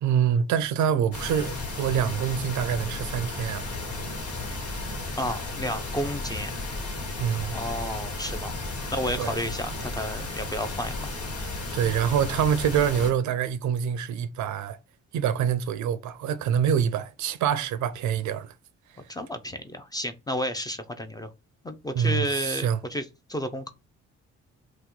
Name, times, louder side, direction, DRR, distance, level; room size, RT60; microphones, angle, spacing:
voice 1, 0.0-3.7 7.2-7.6 9.2-9.3 11.7-14.8 15.1-18.5 21.9-22.8, right 8 dB, 75° right, 0.5 m, -25 dB
sound 1, 1.1-13.1, left 2 dB, 55° left, 1.3 m, -34 dB
voice 2, 5.2-6.5 7.5-8.5 8.9-11.1 19.1-21.3 21.6-23.7, equal, 15° left, 0.4 m, -32 dB
2.9 x 2.1 x 3.6 m
cardioid pair, 90°, 30 cm